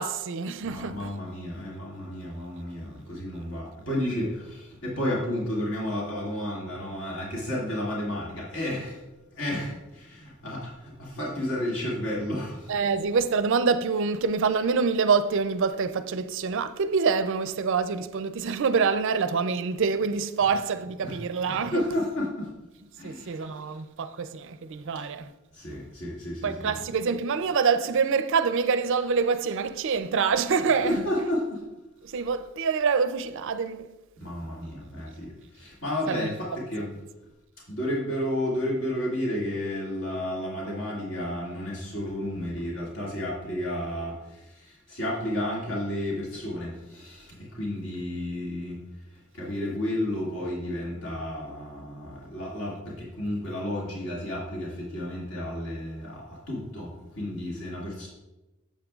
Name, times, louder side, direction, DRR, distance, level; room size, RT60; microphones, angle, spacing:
voice 1, 0.0-1.1 12.7-22.0 23.0-25.3 26.4-31.3 32.0-33.9 36.0-36.4, right 5 dB, 60° right, 0.4 m, -26 dB
voice 2, 0.6-4.4 4.8-8.9 9.4-9.7 10.4-10.6 11.2-12.6 21.0-21.2 21.5-22.5 23.0-23.3 25.6-26.8 30.8-31.4 34.2-35.1 35.6-36.9 37.7-44.1 44.9-47.2 47.6-48.7 49.4-52.7 53.2-56.2 56.5-56.9 57.2-58.1, left 1 dB, 60° left, 2.2 m, -31 dB
8.8 x 7.5 x 2.4 m
head